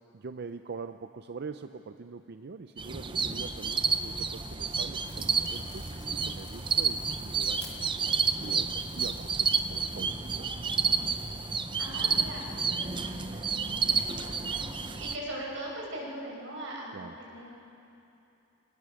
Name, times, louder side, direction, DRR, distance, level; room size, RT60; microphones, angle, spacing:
voice 1, 0.1-5.9 6.2-10.6 16.9-17.2, right 4 dB, 55° right, 9 dB, 0.5 m, -44 dB
sound 1, 2.8-15.1, right 5 dB, 25° right, 0.8 m, -30 dB
sound 2, 5.1-11.7, left 4 dB, 20° left, 1.5 m, -54 dB
voice 2, 11.8-14.7 15.0-17.5, right 1 dB, 85° right, -2 dB, 5.8 m, -41 dB
27.0 x 18.5 x 6.4 m, 2.9 s
head